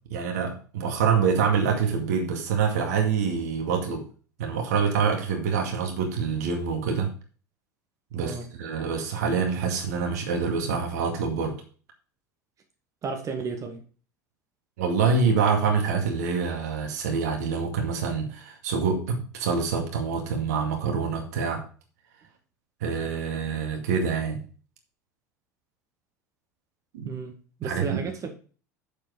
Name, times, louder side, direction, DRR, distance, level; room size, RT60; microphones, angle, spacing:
voice 1, 0.1-4.1 4.4-7.1 8.1-11.6 14.8-21.6 22.8-24.4 26.9-27.1 27.6-28.0, right 5 dB, 65° right, 2.1 m, -26 dB
voice 2, 8.2-8.5 13.0-13.8 27.0-28.3, right 5 dB, 35° right, 1.6 m, -33 dB
7.3 x 7.1 x 4.9 m
figure-of-eight pair, 70°, 10 cm